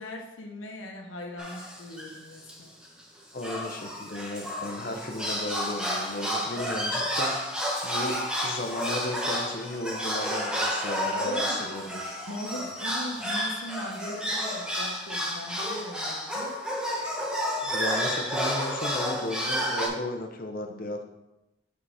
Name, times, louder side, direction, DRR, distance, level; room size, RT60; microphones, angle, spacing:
voice 1, 0.0-2.7 11.1-11.6 12.3-16.6, left 1 dB, 80° left, 1 dB, 0.9 m, -39 dB
sound 1, 1.4-2.2 2.5-2.6 2.8-3.0 3.4-19.9, equal, 5° right, 0.9 m, -31 dB
voice 2, 3.3-7.5 7.8-8.2 8.4-12.0 12.6-12.7 17.6-21.0, left 1 dB, 45° left, 5 dB, 0.8 m, -34 dB
5.7 x 5.1 x 4.9 m, 0.93 s
head